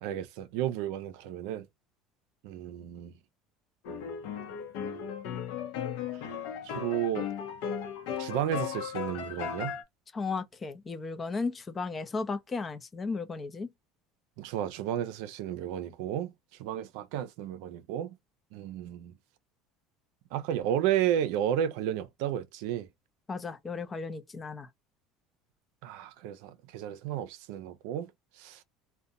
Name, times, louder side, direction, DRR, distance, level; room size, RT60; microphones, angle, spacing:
voice 1, 0.0-1.7 2.4-3.1 6.6-7.3 8.2-9.7 14.4-16.3 16.6-18.1 18.5-19.1 20.3-22.9 25.8-28.1 28.4-28.6, right 11 dB, 75° right, 0.4 m, -32 dB
sound 1, 3.8-9.8, left 8 dB, 75° left, 0.7 m, -36 dB
voice 2, 10.1-13.7 23.3-24.7, left 4 dB, 25° left, 0.5 m, -35 dB
2.5 x 2.2 x 2.7 m
supercardioid pair, 100°, 0 cm